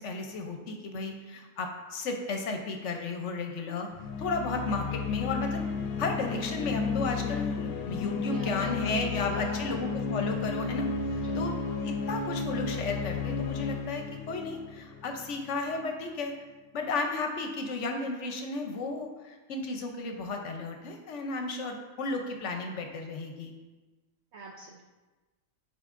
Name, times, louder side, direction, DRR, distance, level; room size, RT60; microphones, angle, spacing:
voice 1, 0.0-3.9 4.2-5.6 6.0-16.3 16.7-23.5, left 3 dB, 65° left, 4 dB, 0.9 m, -34 dB
sound 1, 3.9-15.5, left 5 dB, 85° left, 1.0 m, -33 dB
voice 2, 8.3-10.0 11.2-11.5 24.3-24.8, right 3 dB, 60° right, -1 dB, 0.8 m, -44 dB
8.8 x 4.5 x 2.5 m, 1.2 s
omnidirectional pair, 1.4 m